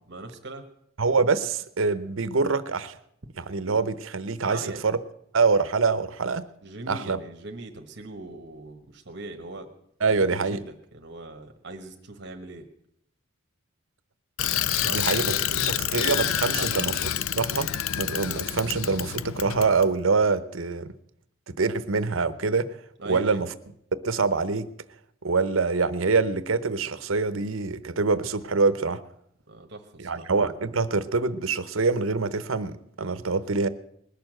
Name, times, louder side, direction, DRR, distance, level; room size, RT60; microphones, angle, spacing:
voice 1, 0.1-0.6 4.4-4.8 6.6-9.7 10.1-12.7 14.7-16.1 16.5-17.1 23.0-23.4 29.5-30.2, right 2 dB, 55° right, 1.3 m, -40 dB
voice 2, 1.0-3.0 3.4-5.0 5.3-6.4 6.9-7.2 10.0-10.6 14.8-15.2 15.6-16.9 17.4-17.7 18.0-20.9 21.5-22.7 23.1-23.5 24.0-24.7 25.2-29.0 30.0-33.7, right 4 dB, 70° right, 0.8 m, -25 dB
Bicycle, 14.4-19.9, left 11 dB, 80° left, 0.4 m, -28 dB
20.5 x 6.9 x 7.7 m
head